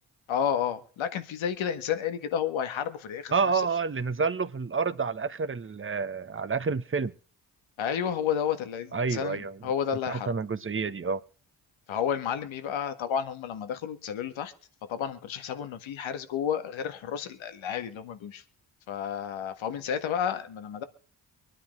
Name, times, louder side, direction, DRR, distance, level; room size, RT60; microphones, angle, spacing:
voice 1, 0.3-3.3 7.8-10.3 11.9-14.5 14.9-18.4 18.9-20.8, left 8 dB, 75° left, 1.7 m, -31 dB
voice 2, 3.3-7.1 8.9-9.6 10.1-11.2, right 5 dB, 25° right, 1.1 m, -29 dB
24.0 x 10.0 x 3.2 m
supercardioid pair, 50°, 47 cm